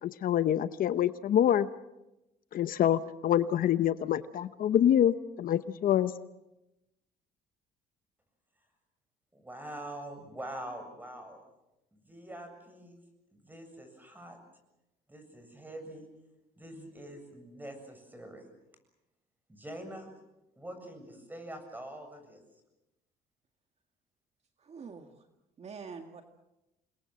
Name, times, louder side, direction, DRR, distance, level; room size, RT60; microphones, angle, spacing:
voice 1, 0.0-1.7 2.5-6.1, left 10 dB, 55° left, 13 dB, 0.9 m, -26 dB
voice 2, 9.3-11.4 11.9-13.0 13.3-14.4 15.1-16.1 16.6-18.5 19.5-20.1 20.6-22.4, right 1 dB, 10° right, 7 dB, 7.5 m, -44 dB
voice 3, 24.6-25.3 25.6-26.2, right 5 dB, 40° right, 6 dB, 1.9 m, -45 dB
28.5 x 21.5 x 7.6 m, 0.94 s
cardioid pair, 110°, 17 cm